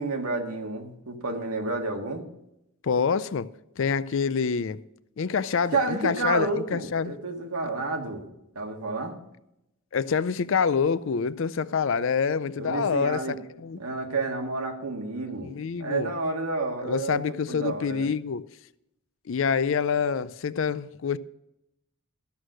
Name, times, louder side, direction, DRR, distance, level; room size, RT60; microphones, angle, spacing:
voice 1, 0.0-2.3 5.7-8.3 8.6-9.2 12.6-13.4 13.8-15.5 15.8-18.1, right 3 dB, 85° right, 1.8 m, -30 dB
voice 2, 2.8-3.5 3.8-4.8 5.2-7.2 9.9-13.2 13.6-13.8 15.4-16.1 16.8-18.5 19.3-21.2, left 6 dB, 55° left, 0.4 m, -26 dB
13.0 x 6.4 x 6.3 m
head